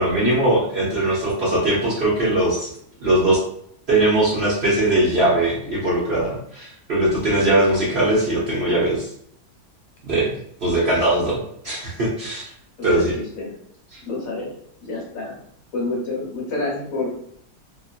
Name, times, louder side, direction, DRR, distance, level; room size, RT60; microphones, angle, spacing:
voice 1, 0.0-2.7 3.0-3.4 3.9-9.1 10.1-10.3 10.6-11.4 11.6-12.5 12.8-13.2 13.9-14.0, right 1 dB, 50° right, -6 dB, 0.8 m, -20 dB
voice 2, 12.8-13.5 14.1-14.5 14.8-15.3 15.7-17.1, left 2 dB, 55° left, -3 dB, 1.2 m, -28 dB
2.9 x 2.6 x 2.4 m, 0.67 s
omnidirectional pair, 1.9 m